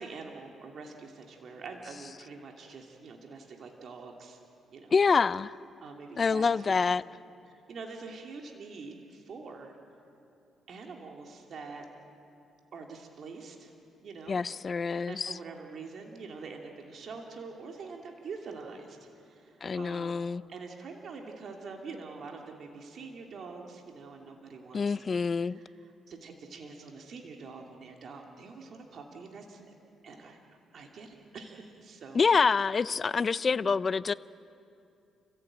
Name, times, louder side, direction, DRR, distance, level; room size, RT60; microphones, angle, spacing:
voice 1, 0.0-4.4 4.7-4.9 5.8-6.7 7.5-9.8 10.7-11.9 12.7-13.7 14.0-14.4 15.1-19.0 19.2-29.7 30.0-30.4 30.7-32.2 33.5-33.7, right 4 dB, 60° right, 2 dB, 2.7 m, -45 dB
voice 2, 4.9-5.5 6.2-7.0 14.3-15.3 19.6-20.4 24.7-25.6 32.1-34.1, left 5 dB, 40° left, 17 dB, 0.5 m, -26 dB
29.0 x 15.5 x 8.9 m, 2.6 s
cardioid pair, 90°, 0 cm